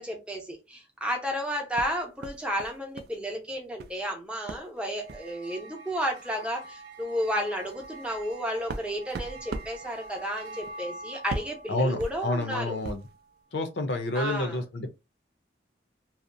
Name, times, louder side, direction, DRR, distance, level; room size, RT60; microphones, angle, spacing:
voice 1, 0.0-12.8 14.1-14.6, equal, 5° right, 0.7 m, -32 dB
sound 1, 1.7-3.2 3.4-4.0 4.5-4.7 5.0-5.3 6.2-6.3 6.6-6.8 7.3-13.2, right 3 dB, 55° right, 0.3 m, -40 dB
sound 2, 4.8-13.4, right 2 dB, 85° right, 0.7 m, -46 dB
voice 2, 11.7-13.0 13.5-14.9, left 2 dB, 70° left, 0.6 m, -29 dB
2.7 x 2.0 x 2.5 m
head